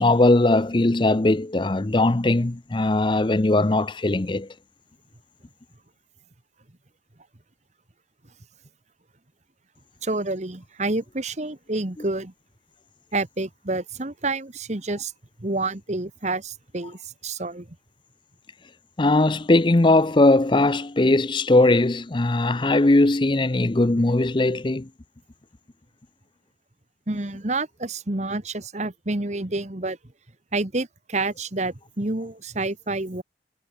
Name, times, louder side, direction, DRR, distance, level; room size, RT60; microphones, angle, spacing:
voice 1, 0.0-4.5 19.0-24.9, left 2 dB, 25° left, 0.6 m, -19 dB
voice 2, 10.0-12.3 13.1-15.1 15.4-17.7 27.1-30.0 30.5-33.2, right 2 dB, 40° right, 1.5 m, -28 dB
head